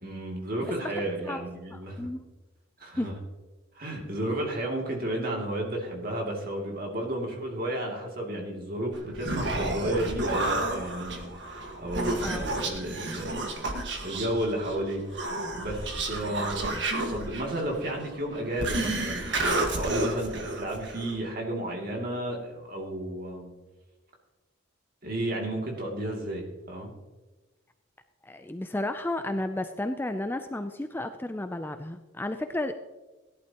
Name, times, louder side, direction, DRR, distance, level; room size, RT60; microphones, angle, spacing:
voice 1, 0.0-2.1 2.8-3.1 3.7-13.5 14.0-16.7 17.1-23.5 25.0-26.9, right 1 dB, 45° right, 0 dB, 2.7 m, -32 dB
voice 2, 0.6-1.4 1.7-2.2 3.0-3.1 12.2-12.4 28.2-32.7, left 1 dB, 10° left, 8 dB, 0.4 m, -33 dB
Human voice, 8.9-21.2, right 2 dB, 65° right, 1.7 m, -31 dB
17.0 x 11.5 x 3.0 m, 1.2 s
head